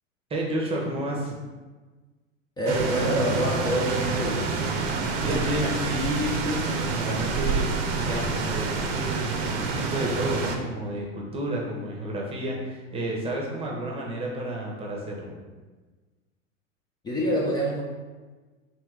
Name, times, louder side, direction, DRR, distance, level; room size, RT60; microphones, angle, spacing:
voice 1, 0.3-1.3 5.2-7.7 8.0-15.3, right 1 dB, 15° right, -2 dB, 0.8 m, -31 dB
voice 2, 2.6-4.4 17.0-17.8, equal, 10° left, -5 dB, 0.4 m, -26 dB
sound 1, 2.7-10.6, right 4 dB, 50° right, 0.7 m, -27 dB
3.4 x 2.9 x 3.2 m, 1.3 s
figure-of-eight pair, 90°, 38 cm